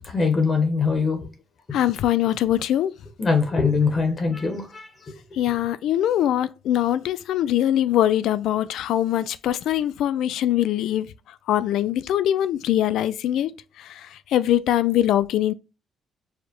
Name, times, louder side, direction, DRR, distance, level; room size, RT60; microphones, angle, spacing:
voice 1, 0.1-1.2 3.2-4.9, left 4 dB, 35° left, 1.2 m, -22 dB
voice 2, 1.7-2.9 5.4-11.1 11.5-13.5 14.3-15.5, left 12 dB, 80° left, 0.3 m, -22 dB
4.8 x 2.1 x 4.4 m
cardioid pair, 90°, 0 cm